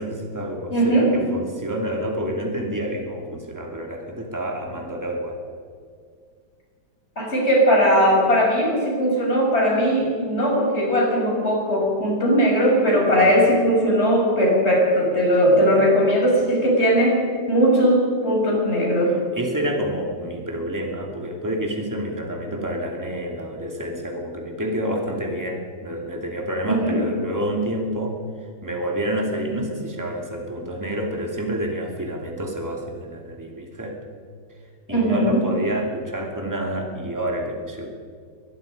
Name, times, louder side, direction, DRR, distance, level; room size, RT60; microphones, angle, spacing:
voice 1, 0.0-5.4 13.2-13.5 19.3-28.2 28.6-34.0 34.9-37.9, right 1 dB, 10° right, 1 dB, 2.7 m, -28 dB
voice 2, 0.7-1.1 7.2-17.2 17.5-19.2 26.7-27.0 34.9-35.4, equal, 30° left, -2 dB, 6.6 m, -19 dB
23.0 x 20.5 x 5.4 m, 2.1 s
omnidirectional pair, 2.2 m